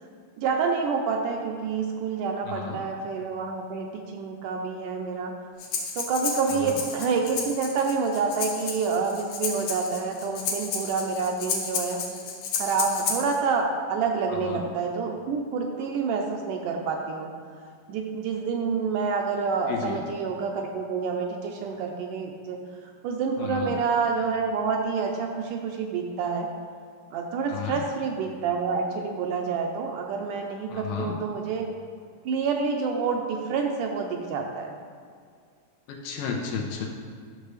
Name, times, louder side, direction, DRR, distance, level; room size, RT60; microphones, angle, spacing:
voice 1, 0.4-5.3 6.0-12.0 12.6-17.3 17.9-22.6 22.8-26.5 27.1-31.7 32.3-34.8, right 5 dB, 80° right, 2 dB, 2.0 m, -28 dB
voice 2, 2.5-2.8 6.5-6.8 14.3-14.7 19.7-20.0 23.4-23.8 27.5-27.8 30.7-31.2 35.9-36.9, left 6 dB, 80° left, 0 dB, 2.6 m, -33 dB
Breathing, 5.6-13.4, left 5 dB, 65° left, 2.0 m, -32 dB
12.0 x 6.7 x 3.2 m, 2.1 s
omnidirectional pair, 4.1 m